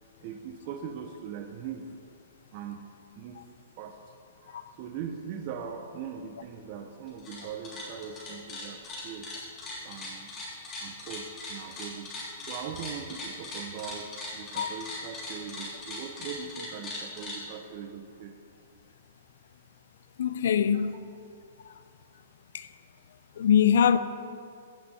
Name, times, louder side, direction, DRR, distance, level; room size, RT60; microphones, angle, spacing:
voice 1, 0.2-1.9 2.5-2.8 3.2-3.4 3.8-4.0 4.4-9.3 9.8-10.3 10.8-12.1 12.5-14.1 14.3-18.3, right 7 dB, 45° right, 0.8 m, -40 dB
sound 1, 7.1-7.4 7.6-17.4, left 2 dB, 20° left, 3.2 m, -39 dB
voice 2, 20.2-20.9 22.5-22.7 23.4-24.0, left 8 dB, 70° left, 0.6 m, -23 dB
16.0 x 6.8 x 4.4 m
hypercardioid pair, 145°, 0 cm